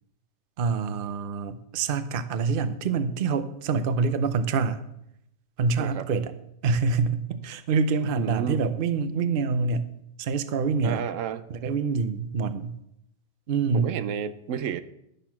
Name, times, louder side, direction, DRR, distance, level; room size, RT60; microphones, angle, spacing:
voice 1, 0.6-4.9 5.6-6.3 6.6-11.1 11.5-12.8 13.5-14.0, right 4 dB, 50° right, 12 dB, 0.8 m, -26 dB
voice 2, 8.1-8.6 10.8-11.5 13.7-14.8, right 8 dB, 80° right, 13 dB, 1.0 m, -31 dB
11.5 x 6.7 x 5.8 m, 0.79 s
omnidirectional pair, 1.3 m